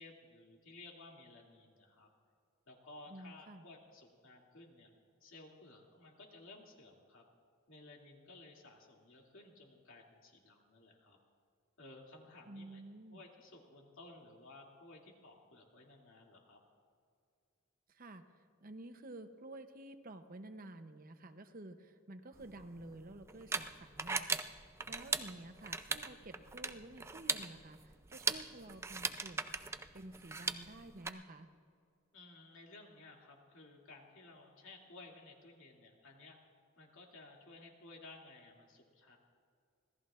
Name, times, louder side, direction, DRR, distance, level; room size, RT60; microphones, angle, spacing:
voice 1, 0.0-2.1 2.7-4.9 5.2-7.3 7.7-11.2 11.8-12.8 13.1-16.6 32.1-36.4 36.8-39.2, left 2 dB, 65° left, -1 dB, 2.5 m, -56 dB
voice 2, 3.1-3.7 12.5-13.2 17.9-18.2 18.6-24.4 24.9-27.8 28.1-29.4 29.9-31.5, right 2 dB, 40° right, 8 dB, 0.8 m, -51 dB
sound 1, 22.4-31.1, right 4 dB, 10° right, 0.4 m, -40 dB
25.5 x 18.0 x 2.5 m, 2.3 s
head